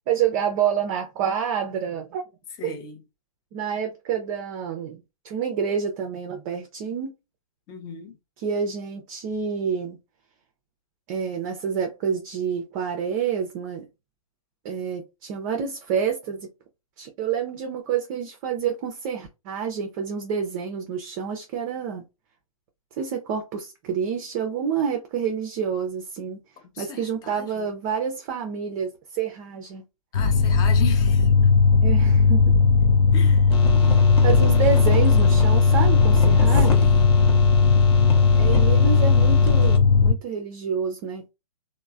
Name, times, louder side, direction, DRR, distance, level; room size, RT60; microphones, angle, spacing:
voice 1, 0.1-2.2 2.6-2.8 3.5-7.1 8.4-10.0 11.1-13.9 14.6-16.5 17.0-22.0 23.0-26.4 26.8-29.8 31.8-32.5 34.2-36.9 38.3-41.3, right 7 dB, 30° right, 0.4 m, -28 dB
voice 2, 2.6-3.0 7.7-8.2 26.7-27.7 30.1-31.3 33.1-33.5 36.5-37.2, left 6 dB, 20° left, 0.5 m, -37 dB
sound 1, 30.1-40.1, left 5 dB, 70° left, 0.5 m, -17 dB
sound 2, 33.5-39.8, left 4 dB, 45° left, 0.8 m, -30 dB
3.1 x 2.0 x 2.3 m
figure-of-eight pair, 120°, 19 cm